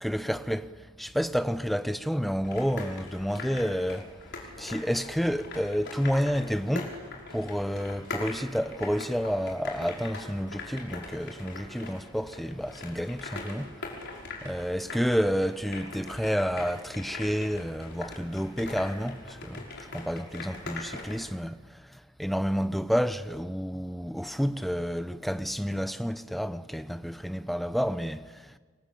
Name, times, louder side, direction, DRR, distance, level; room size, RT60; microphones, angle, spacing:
voice 1, 0.0-7.0 7.3-14.1 14.4-28.6, equal, ahead, 0.7 m, -30 dB
sound 1, 2.4-21.3, left 3 dB, 55° left, 5.7 m, -42 dB
30.0 x 21.5 x 8.6 m
head